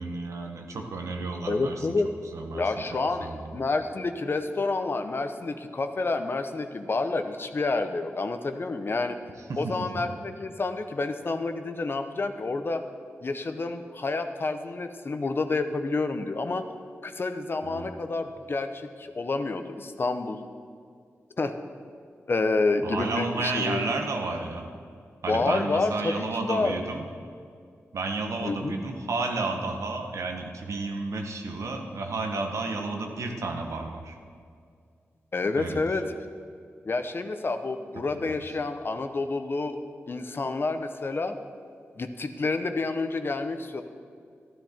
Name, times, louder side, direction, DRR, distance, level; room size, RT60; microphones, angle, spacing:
voice 1, 0.0-1.9 2.3-2.7 3.1-3.6 9.5-9.8 17.6-17.9 22.8-24.7 25.2-27.1 27.9-34.2 35.6-36.0 38.1-38.4, right 3 dB, 85° right, 3 dB, 1.3 m, -32 dB
voice 2, 1.5-2.1 2.5-9.2 9.6-12.8 13.2-16.7 17.0-20.4 21.4-21.5 22.3-23.8 25.3-26.7 28.4-28.8 35.3-36.1 36.8-39.8 40.1-41.3 42.0-43.8, left 3 dB, 50° left, 8 dB, 0.9 m, -29 dB
12.5 x 12.0 x 4.4 m, 2.3 s
wide cardioid pair, 75°, 5 cm